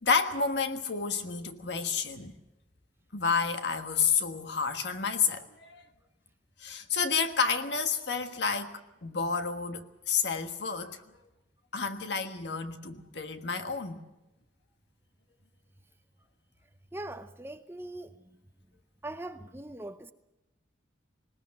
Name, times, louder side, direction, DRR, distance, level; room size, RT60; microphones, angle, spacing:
voice 1, 0.0-2.3 3.1-5.9 6.6-11.0 11.7-14.0, left 5 dB, 65° left, 1.5 m, -30 dB
voice 2, 16.9-18.4 19.0-20.1, right 1 dB, 10° right, 0.7 m, -41 dB
20.0 x 19.5 x 7.5 m
head